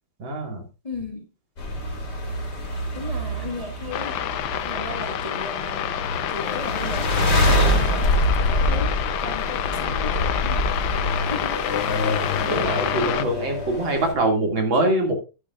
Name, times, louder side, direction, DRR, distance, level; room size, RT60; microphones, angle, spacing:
voice 1, 0.2-0.6 12.1-12.2 12.5-15.1, right 2 dB, 65° right, 2 dB, 3.3 m, -23 dB
voice 2, 0.8-1.3 2.9-4.2 4.6-6.0 6.3-10.8 11.2-11.6, left 3 dB, 20° left, 1 dB, 2.0 m, -36 dB
sound 1, 1.6-14.1, left 1 dB, 50° left, 3.3 m, -25 dB
sound 2, 3.9-13.2, left 11 dB, 70° left, 1.5 m, -28 dB
11.5 x 11.0 x 2.5 m, 0.30 s
omnidirectional pair, 2.3 m